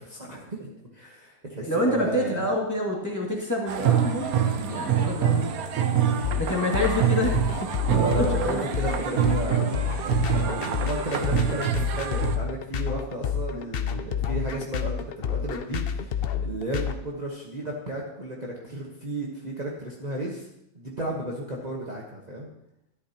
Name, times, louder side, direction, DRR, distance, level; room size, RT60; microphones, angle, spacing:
voice 1, 0.0-2.5 7.9-20.5 20.7-22.5, right 1 dB, 30° right, -3 dB, 1.3 m, -33 dB
voice 2, 1.6-5.4 6.4-7.3 7.9-8.7, left 1 dB, 10° left, -4 dB, 2.2 m, -27 dB
sound 1, 3.7-12.4, right 9 dB, 85° right, 1.2 m, -26 dB
sound 2, 6.2-16.9, left 8 dB, 55° left, 0.7 m, -29 dB
13.0 x 11.0 x 2.9 m, 0.78 s
omnidirectional pair, 1.5 m